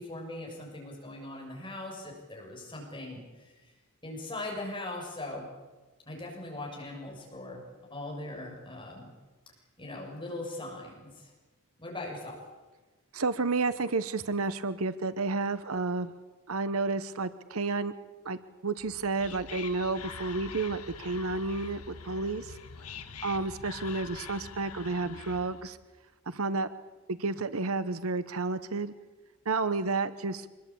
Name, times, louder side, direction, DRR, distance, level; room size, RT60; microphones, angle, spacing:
voice 1, 0.0-3.7 4.0-5.5 6.1-7.6 7.9-9.1 9.8-11.3 11.8-12.4, left 2 dB, 20° left, -1 dB, 6.8 m, -40 dB
voice 2, 13.1-16.1 16.5-17.9 18.2-18.4 18.6-22.6 23.2-25.8 26.3-26.7 27.1-28.9 29.5-30.5, right 3 dB, 70° right, 13 dB, 0.9 m, -31 dB
Whispering, 18.8-25.7, left 6 dB, 85° left, 1.6 m, -44 dB
25.0 x 21.0 x 8.6 m, 1.2 s
head